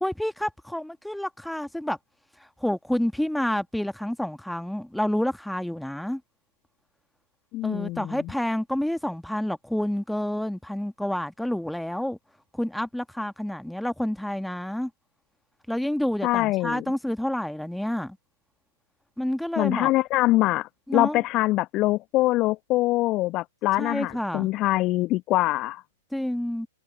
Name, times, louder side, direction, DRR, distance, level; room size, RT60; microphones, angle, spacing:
voice 1, 0.0-2.0 2.6-6.2 7.6-12.2 12.5-14.9 15.7-18.2 19.2-19.9 20.9-21.2 23.8-24.5 26.1-26.7, left 1 dB, ahead, 1.7 m, -29 dB
voice 2, 7.5-8.1 16.2-16.8 19.6-25.8, left 18 dB, 35° left, 0.8 m, -24 dB
figure-of-eight pair, 105°, 0 cm